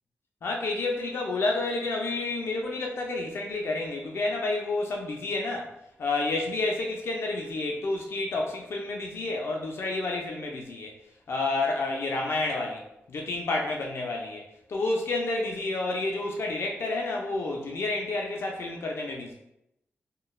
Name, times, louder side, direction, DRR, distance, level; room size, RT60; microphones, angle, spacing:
voice 1, 0.4-5.7 6.0-10.9 11.3-12.8 13.1-19.3, left 2 dB, 60° left, 0 dB, 0.4 m, -30 dB
3.0 x 2.2 x 2.3 m, 0.83 s
wide cardioid pair, 125°, 5 cm